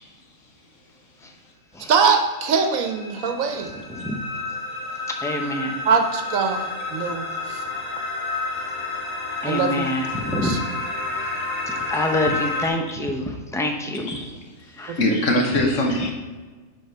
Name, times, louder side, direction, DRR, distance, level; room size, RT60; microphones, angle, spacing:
voice 1, 1.9-3.7 5.8-7.6 9.4-9.9 10.3-10.6 14.9-15.1, right 5 dB, 75° right, 6 dB, 1.3 m, -23 dB
sound 1, 2.2-12.7, left 3 dB, 45° left, 2.7 m, -30 dB
voice 2, 5.2-5.8 9.4-10.6 11.9-14.1 14.8-15.0, left 1 dB, 5° left, 3 dB, 0.5 m, -26 dB
voice 3, 14.0-14.5 14.9-16.1, left 1 dB, 65° left, 2 dB, 1.5 m, -22 dB
10.5 x 4.0 x 4.5 m, 1.3 s
omnidirectional pair, 1.4 m